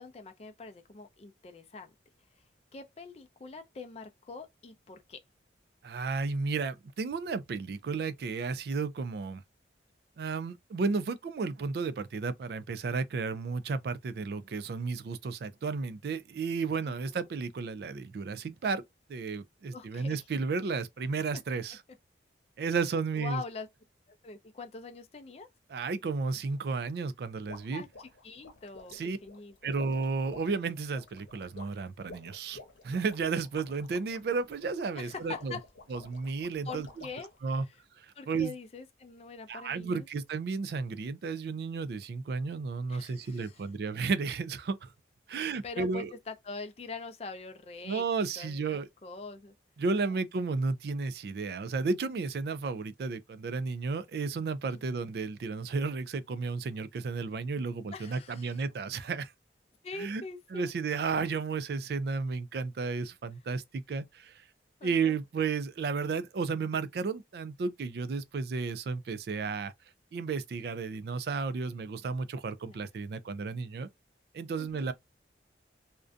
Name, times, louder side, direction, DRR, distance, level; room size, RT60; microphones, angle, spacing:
voice 1, 0.0-1.9 2.7-5.2 16.8-17.3 19.7-20.2 23.1-23.7 24.1-25.5 27.7-29.0 29.2-29.8 35.0-35.6 36.6-37.3 37.7-37.8 38.1-40.1 42.9-43.7 45.3-48.1 48.4-48.6 49.0-49.5 50.0-50.2 54.7-54.8 57.9-58.6 59.8-60.7 64.8-65.2 72.7-72.9 74.6-74.9, left 4 dB, 35° left, 0.4 m, -44 dB
voice 2, 5.8-9.4 10.2-18.8 19.1-21.8 22.6-23.4 25.7-27.8 28.9-29.2 29.6-35.5 35.9-36.9 37.4-37.6 38.0-38.5 39.5-44.9 45.3-46.1 47.8-48.9 49.8-59.3 60.0-60.2 60.5-64.3 64.8-69.7 70.1-73.9 74.3-74.9, right 4 dB, 60° right, 0.3 m, -33 dB
sound 1, 27.5-37.4, left 3 dB, 85° left, 0.8 m, -51 dB
2.5 x 2.1 x 2.4 m
head